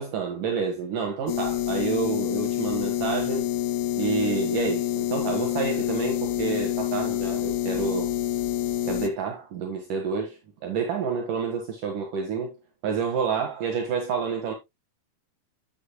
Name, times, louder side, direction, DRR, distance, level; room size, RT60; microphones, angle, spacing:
voice 1, 0.0-3.5 4.0-8.1 8.9-12.6 12.8-14.5, right 5 dB, 65° right, 2.9 m, -29 dB
sound 1, 1.3-9.1, left 12 dB, 85° left, 2.9 m, -27 dB
10.5 x 8.8 x 2.2 m
omnidirectional pair, 4.5 m